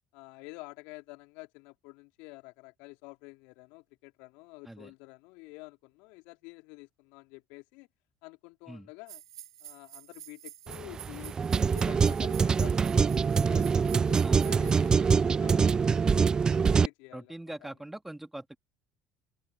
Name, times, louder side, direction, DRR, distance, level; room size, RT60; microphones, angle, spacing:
voice 1, 0.1-7.9 8.2-9.2 9.6-17.3 17.6-17.7, left 26 dB, 70° left, 3.7 m, -49 dB
sound 1, 9.1-14.9, right 12 dB, 85° right, 0.9 m, -48 dB
sound 2, 10.7-16.9, right 5 dB, 30° right, 0.3 m, -24 dB
voice 2, 14.2-14.6 17.1-18.6, right 1 dB, 10° right, 2.9 m, -42 dB
hypercardioid pair, 65°, 3 cm